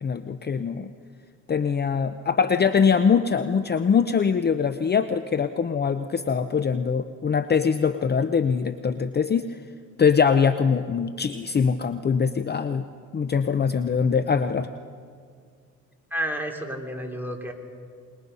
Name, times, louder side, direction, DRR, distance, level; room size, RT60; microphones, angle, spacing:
voice 1, 0.0-0.9 1.5-9.5 10.0-12.8 13.1-14.7, left 6 dB, 35° left, 10 dB, 0.7 m, -23 dB
voice 2, 16.1-17.5, equal, 5° right, 1 dB, 3.2 m, -30 dB
26.5 x 21.0 x 5.5 m, 2.1 s
cardioid pair, 90°, 30 cm